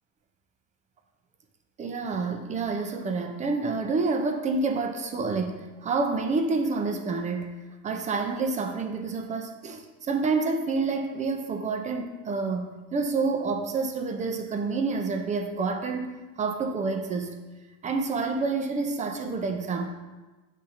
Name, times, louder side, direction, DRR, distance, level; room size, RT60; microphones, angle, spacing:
voice 1, 1.8-7.6 7.8-17.4 17.8-19.9, right 4 dB, 20° right, 4 dB, 0.3 m, -28 dB
7.7 x 2.7 x 2.5 m, 1.2 s
supercardioid pair, 105°, 41 cm